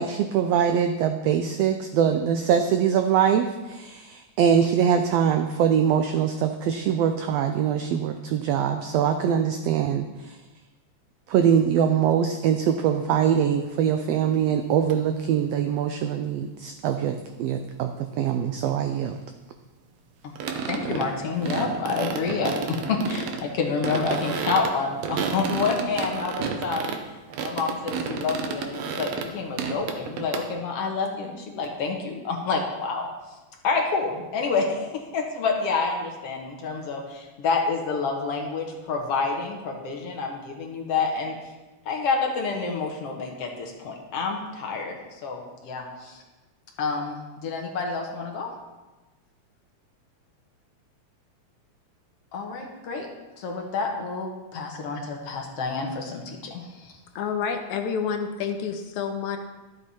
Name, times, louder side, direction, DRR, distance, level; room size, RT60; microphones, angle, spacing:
voice 1, 0.0-10.4 11.3-19.2, right 8 dB, 85° right, 7 dB, 1.4 m, -23 dB
sound 1, 13.6-13.7 14.9-15.0 20.4-21.1 21.4-23.4 23.8-27.0 27.3-29.3 29.6-30.5, right 6 dB, 70° right, 1.7 m, -31 dB
voice 2, 20.7-26.9 27.4-33.1 33.6-41.3 41.9-45.0 45.2-46.2 46.8-48.5 52.3-53.1 53.4-56.9, left 4 dB, 60° left, 1 dB, 2.0 m, -28 dB
voice 3, 57.2-59.4, left 6 dB, 80° left, 6 dB, 2.1 m, -28 dB
12.0 x 7.7 x 4.2 m, 1.2 s
omnidirectional pair, 3.5 m